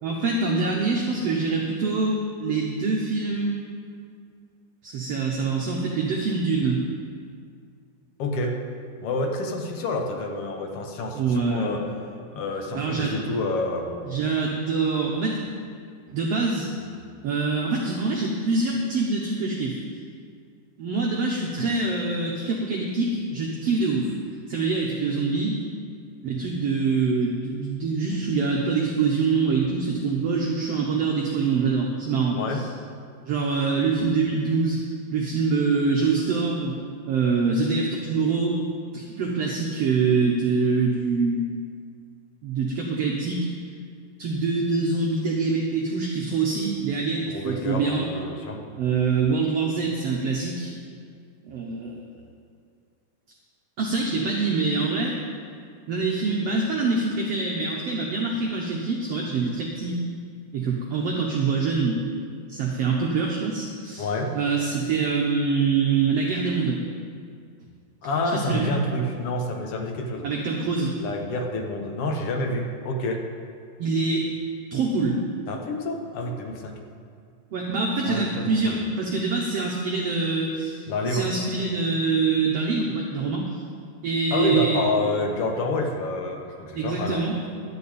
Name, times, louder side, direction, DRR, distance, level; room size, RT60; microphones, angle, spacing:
voice 1, 0.0-3.6 4.8-6.9 11.1-12.0 12.7-13.1 14.0-15.4 16.1-16.7 17.2-19.8 20.8-24.1 24.5-25.5 26.2-32.7 33.2-34.8 35.1-36.8 37.1-38.6 38.9-41.5 42.4-43.5 44.2-48.1 48.8-50.7 51.4-52.0 53.8-55.2 55.9-60.0 60.5-62.0 62.5-64.1 64.3-66.8 68.3-68.7 70.2-71.0 73.8-74.3 74.7-75.2 77.5-83.5 84.0-84.8 86.8-87.3, right 4 dB, 65° right, -1 dB, 1.7 m, -25 dB
voice 2, 8.2-8.6 9.0-11.8 12.3-14.0 32.3-32.6 47.3-48.6 64.0-64.3 68.0-70.3 70.9-73.2 75.5-76.8 78.1-78.8 80.9-81.3 84.3-87.2, left 2 dB, 60° left, 2 dB, 1.7 m, -28 dB
12.0 x 6.9 x 8.5 m, 2.2 s
omnidirectional pair, 3.8 m